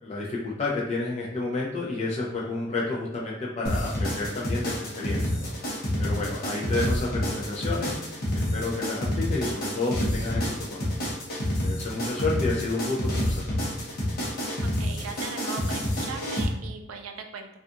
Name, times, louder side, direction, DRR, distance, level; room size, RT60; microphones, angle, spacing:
voice 1, 0.0-7.9 8.3-11.2 11.6-13.4, left 3 dB, 30° left, -4 dB, 0.4 m, -30 dB
sound 1, 3.7-16.5, equal, 50° left, 0.8 m, -28 dB
voice 2, 14.8-17.5, right 5 dB, 90° right, 4 dB, 0.4 m, -38 dB
2.4 x 2.3 x 2.6 m, 0.83 s
head